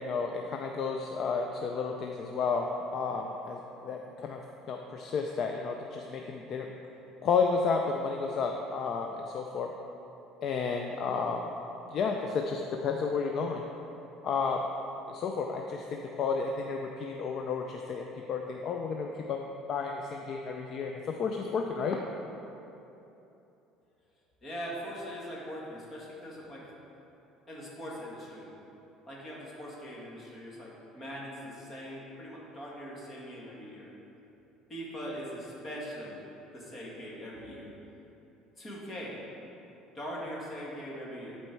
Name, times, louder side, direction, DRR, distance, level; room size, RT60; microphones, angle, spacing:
voice 1, 0.0-4.4 4.7-6.7 7.2-9.7 10.4-11.5 11.9-13.7 14.2-14.7 15.1-22.0, left 5 dB, 45° left, 2 dB, 0.4 m, -32 dB
voice 2, 24.4-26.7 27.5-28.5 29.0-33.9 34.7-36.2 36.5-37.7 38.6-39.2 39.9-41.4, equal, 25° left, -5 dB, 1.9 m, -41 dB
11.0 x 4.4 x 4.5 m, 3.0 s
cardioid pair, 140°, 0 cm